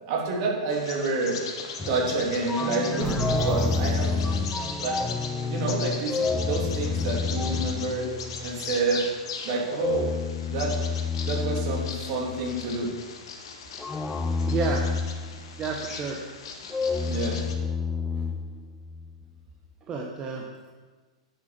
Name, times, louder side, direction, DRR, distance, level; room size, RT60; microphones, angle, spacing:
voice 1, 0.1-1.4 1.8-4.2 4.8-5.1 5.4-8.1 8.4-9.1 9.4-10.1 10.5-10.7 11.1-12.9 17.0-17.4, right 3 dB, 45° right, -2 dB, 3.1 m, -28 dB
Bird vocalization bird call bird song, 0.7-17.5, left 5 dB, 55° left, 1.4 m, -39 dB
sound 1, 1.8-8.8 9.7-12.7 13.8-15.9 16.7-19.1, left 4 dB, 10° left, 0.7 m, -29 dB
sound 2, 3.0-5.0, right 9 dB, 70° right, 2.6 m, -36 dB
voice 2, 14.5-14.8 15.6-16.2 19.9-20.4, right 4 dB, 25° right, 0 dB, 1.2 m, -30 dB
9.7 x 7.6 x 5.9 m, 1.4 s
figure-of-eight pair, 100°, 3 cm